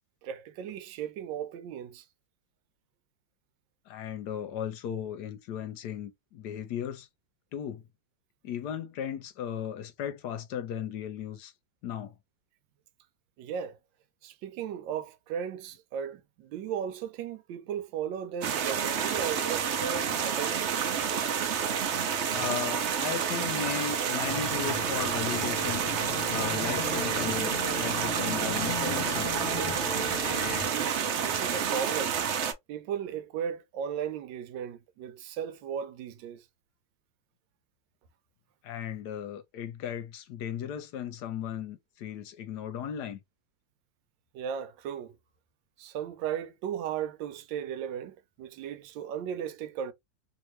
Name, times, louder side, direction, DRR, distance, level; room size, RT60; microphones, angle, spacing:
voice 1, 0.2-2.0 13.4-13.8 14.2-20.7 30.6-32.2 32.7-36.4 44.3-45.1 45.8-49.9, right 8 dB, 90° right, 1.3 m, -36 dB
voice 2, 3.9-7.1 7.5-7.8 8.4-11.5 11.8-12.1 22.3-25.9 26.3-29.3 38.6-43.2, left 9 dB, 75° left, 1.1 m, -36 dB
sound 1, 18.4-32.5, right 7 dB, 70° right, 0.6 m, -29 dB
sound 2, 24.2-30.6, left 3 dB, 55° left, 0.6 m, -37 dB
2.9 x 2.8 x 3.1 m
omnidirectional pair, 2.0 m